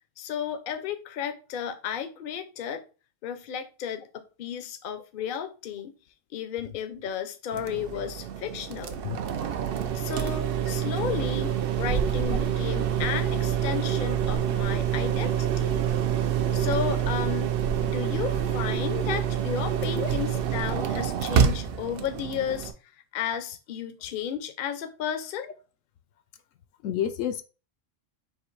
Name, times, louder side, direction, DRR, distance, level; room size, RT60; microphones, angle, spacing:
voice 1, 0.2-2.8 3.2-5.9 6.3-9.0 9.9-15.8 16.5-17.5 17.8-22.7 23.1-25.5, left 8 dB, 55° left, 0.7 m, -33 dB
sound 1, 7.5-22.7, right 9 dB, 60° right, 0.6 m, -27 dB
voice 2, 26.8-27.4, left 9 dB, 80° left, 1.0 m, -29 dB
3.8 x 2.9 x 4.6 m
omnidirectional pair, 1.3 m